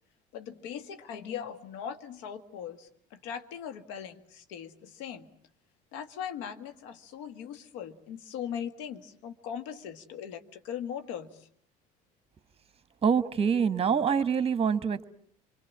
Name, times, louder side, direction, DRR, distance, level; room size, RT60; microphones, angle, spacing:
voice 1, 0.3-5.3 5.9-11.5, left 8 dB, 70° left, 9 dB, 1.7 m, -40 dB
voice 2, 13.0-15.0, right 6 dB, 30° right, 14 dB, 1.3 m, -25 dB
26.5 x 25.0 x 7.3 m, 0.63 s
hypercardioid pair, 65°, 20 cm